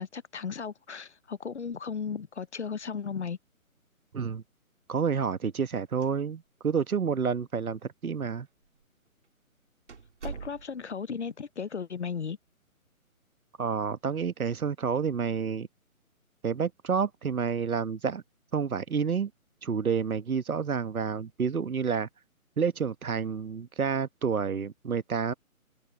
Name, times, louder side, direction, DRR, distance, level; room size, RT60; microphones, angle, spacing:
voice 1, 0.0-3.4 10.2-12.4, left 6 dB, 50° left, 0.7 m, -35 dB
voice 2, 4.9-8.5 13.6-15.7 16.4-18.2 18.5-19.3 19.6-22.1 22.6-25.3, right 6 dB, 80° right, 1.4 m, -29 dB
sound 1, 5.9-6.6 6.9-7.0 7.8-7.9 8.6-8.8 9.2-9.3 9.9-11.0, right 5 dB, 55° right, 3.1 m, -43 dB
hypercardioid pair, 175°, 43 cm